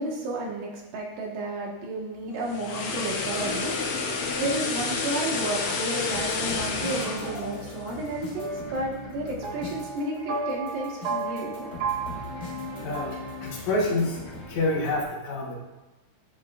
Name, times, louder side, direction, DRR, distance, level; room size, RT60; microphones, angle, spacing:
voice 1, 0.0-11.7, right 1 dB, 85° right, -2 dB, 3.1 m, -32 dB
sound 1, 2.3-8.5 8.8-9.0, left 4 dB, 80° left, 1.2 m, -30 dB
sound 2, 6.1-15.0, left 3 dB, 40° left, 0.9 m, -41 dB
sound 3, 6.9-13.9, right 4 dB, 65° right, 1.9 m, -35 dB
voice 2, 12.8-14.2 14.5-15.6, left 2 dB, 65° left, -2 dB, 2.5 m, -27 dB
10.0 x 7.1 x 2.4 m, 1.1 s
omnidirectional pair, 3.8 m